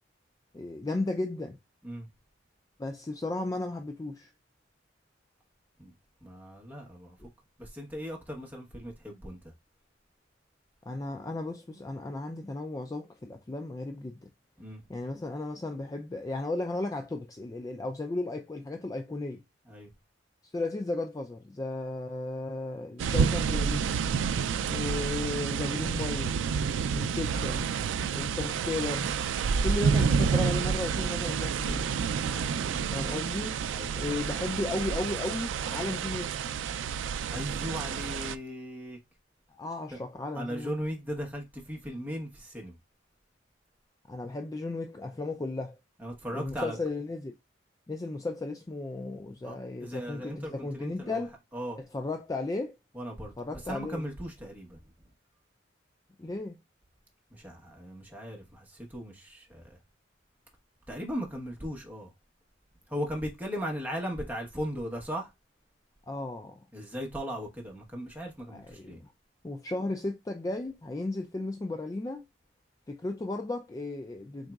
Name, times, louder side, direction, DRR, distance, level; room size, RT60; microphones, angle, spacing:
voice 1, 0.5-1.6 2.8-4.3 10.9-14.3 14.9-19.4 20.5-24.0 24.7-26.4 26.9-27.7 28.1-29.1 29.6-31.9 32.9-33.6 34.0-36.4 39.5-40.7 44.1-45.8 46.3-47.3 47.9-51.3 51.8-52.8 53.4-54.0 56.2-56.6 66.1-66.6 68.5-69.1 69.4-72.2 72.9-74.5, left 2 dB, 20° left, 0.3 m, -35 dB
voice 2, 6.2-7.3 7.6-9.5 14.6-14.8 19.7-19.9 32.2-32.6 33.7-34.2 37.3-39.0 39.9-40.0 40.3-42.8 46.0-46.8 49.4-51.2 51.5-51.8 52.9-54.8 57.3-59.8 60.9-62.1 62.9-65.3 66.7-69.0, equal, 10° right, 1.1 m, -38 dB
sound 1, 23.0-38.4, right 6 dB, 80° right, 0.3 m, -29 dB
4.0 x 3.6 x 2.3 m
head